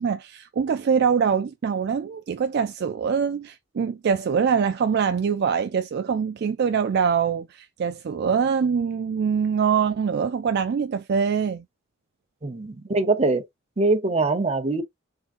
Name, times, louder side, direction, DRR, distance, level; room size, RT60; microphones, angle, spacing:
voice 1, 0.0-11.6, right 6 dB, 55° right, 0.4 m, -24 dB
voice 2, 12.4-13.5 13.8-14.8, right 3 dB, 30° right, 0.8 m, -23 dB
3.8 x 3.6 x 2.5 m
head